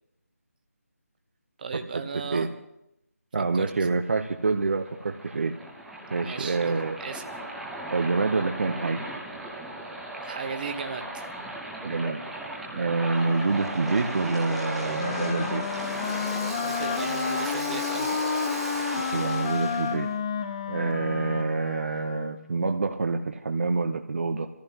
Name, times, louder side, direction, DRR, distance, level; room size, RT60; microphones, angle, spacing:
voice 1, 1.6-2.5 3.5-3.7 6.2-7.3 10.2-11.3 16.6-18.1, right 5 dB, 35° right, 6 dB, 1.1 m, -36 dB
voice 2, 3.3-5.6 6.1-7.0 7.9-9.0 11.8-12.2 12.7-15.6 19.1-20.1 20.7-24.5, right 3 dB, 55° right, 6 dB, 0.9 m, -27 dB
Waves surf, 4.2-19.9, right 1 dB, ahead, 0.9 m, -36 dB
Wind instrument woodwind instrument, 14.4-22.5, left 6 dB, 20° left, 0.5 m, -31 dB
24.5 x 14.5 x 2.9 m, 0.83 s
figure-of-eight pair, 160°, 8 cm